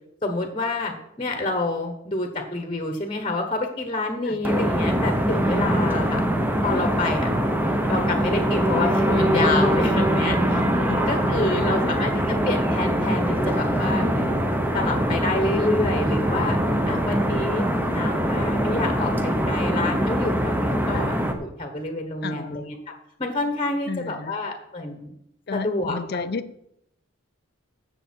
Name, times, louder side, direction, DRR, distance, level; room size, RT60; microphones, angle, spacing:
voice 1, 0.2-6.2 6.6-7.3 7.9-16.6 16.9-21.1 21.4-22.8 23.2-25.2 25.5-26.2, left 2 dB, 25° left, 5 dB, 1.2 m, -28 dB
sound 1, 4.4-21.3, equal, 10° right, 1.0 m, -23 dB
voice 2, 10.9-11.9 20.9-21.1 22.2-22.7 23.9-24.3 25.5-26.7, left 4 dB, 50° left, 13 dB, 0.6 m, -33 dB
15.0 x 6.7 x 4.5 m, 0.77 s
head